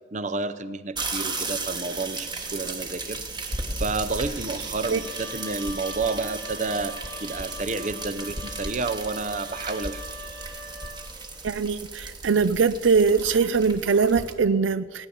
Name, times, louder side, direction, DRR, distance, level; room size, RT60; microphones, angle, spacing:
voice 1, 0.1-10.0, right 3 dB, 40° right, 13 dB, 0.7 m, -30 dB
sound 1, 0.9-14.3, right 3 dB, 25° right, 1.4 m, -35 dB
Wind instrument woodwind instrument, 4.9-11.4, left 1 dB, 60° right, 2.1 m, -42 dB
voice 2, 11.4-15.1, right 5 dB, 75° right, 14 dB, 0.5 m, -22 dB
18.0 x 9.9 x 7.1 m, 1.4 s
head